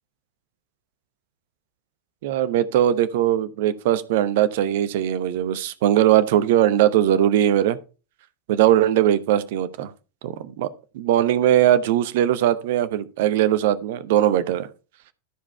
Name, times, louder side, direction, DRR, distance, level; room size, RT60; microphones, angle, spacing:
voice 1, 2.2-7.8 8.5-9.9 10.2-10.7 10.9-14.7, right 12 dB, 50° right, 0.8 m, -20 dB
13.0 x 4.9 x 4.6 m
figure-of-eight pair, 90°, 0 cm